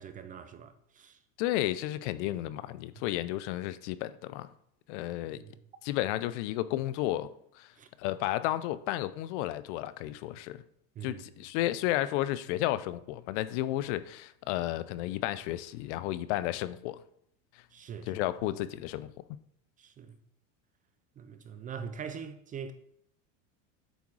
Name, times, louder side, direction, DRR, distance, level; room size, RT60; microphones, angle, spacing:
voice 1, 0.0-1.2 2.9-3.0 5.3-5.6 7.7-7.9 11.0-11.2 17.7-18.2 19.8-20.2 21.2-22.7, right 7 dB, 25° right, 0.4 m, -43 dB
voice 2, 1.4-4.5 4.9-5.4 5.8-7.7 8.0-10.6 11.0-17.0 18.1-19.1, left 15 dB, 65° left, 0.5 m, -32 dB
8.1 x 3.6 x 4.6 m
supercardioid pair, 125°, 38 cm